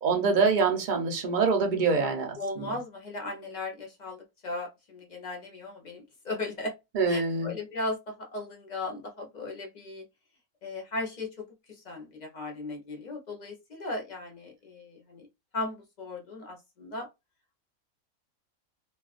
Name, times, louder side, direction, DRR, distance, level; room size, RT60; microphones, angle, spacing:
voice 1, 0.0-2.7 6.9-7.5, right 4 dB, 50° right, 0.6 m, -25 dB
voice 2, 2.4-6.7 7.1-10.0 10.6-15.3 15.5-17.1, left 2 dB, 45° left, 0.6 m, -37 dB
2.3 x 2.3 x 2.4 m
omnidirectional pair, 1.4 m